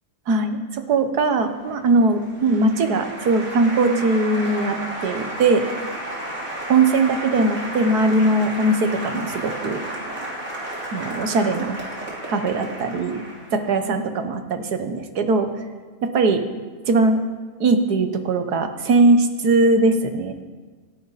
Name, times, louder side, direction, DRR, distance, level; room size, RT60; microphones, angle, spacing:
voice 1, 0.3-5.6 6.7-9.8 10.9-11.8 12.3-13.2 13.5-15.7 16.0-16.4 16.9-17.2 17.6-20.3, right 3 dB, 90° right, 7 dB, 1.7 m, -20 dB
Applause, 1.3-13.8, right 1 dB, 60° right, 3.5 m, -33 dB
28.0 x 10.5 x 4.1 m, 1.4 s
omnidirectional pair, 1.6 m